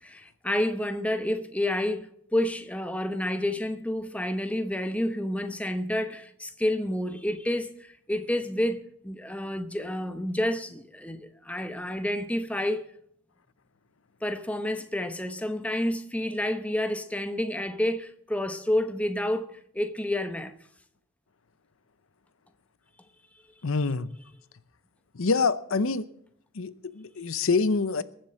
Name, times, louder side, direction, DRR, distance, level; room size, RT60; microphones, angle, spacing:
voice 1, 0.0-12.9 14.2-20.5, left 1 dB, 5° left, 0.8 m, -29 dB
voice 2, 23.6-24.1 25.1-26.1 26.5-28.0, left 4 dB, 70° left, 0.7 m, -26 dB
21.0 x 7.6 x 7.5 m
head